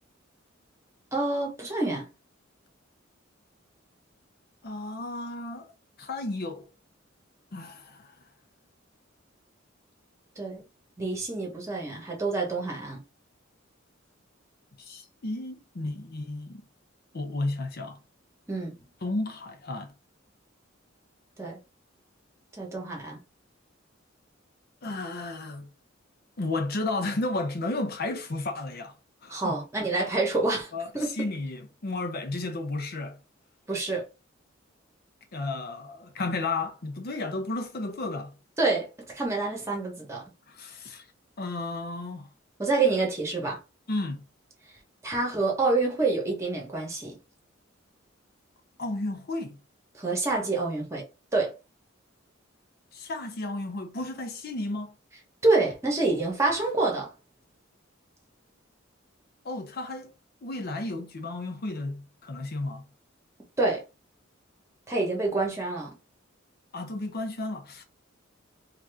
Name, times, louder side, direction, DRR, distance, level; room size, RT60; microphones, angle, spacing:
voice 1, 1.1-2.1 10.4-10.6 11.0-13.0 18.5-18.8 21.4-21.6 22.6-23.2 29.3-31.1 33.7-34.1 38.6-40.2 42.6-43.6 45.0-47.1 50.0-51.1 51.3-51.5 55.4-57.1 63.6-63.8 64.9-65.9, right 3 dB, 15° right, 1.1 m, -27 dB
voice 2, 4.6-5.7 6.0-6.7 7.5-8.1 14.8-16.6 17.1-18.0 19.0-19.9 24.8-25.7 26.4-28.9 29.2-29.6 30.7-33.2 35.3-38.4 40.5-41.1 41.4-42.3 43.9-44.2 48.8-49.6 52.9-54.9 59.4-60.1 60.4-62.8 66.7-67.8, left 2 dB, 50° left, 0.7 m, -33 dB
2.8 x 2.4 x 3.4 m
head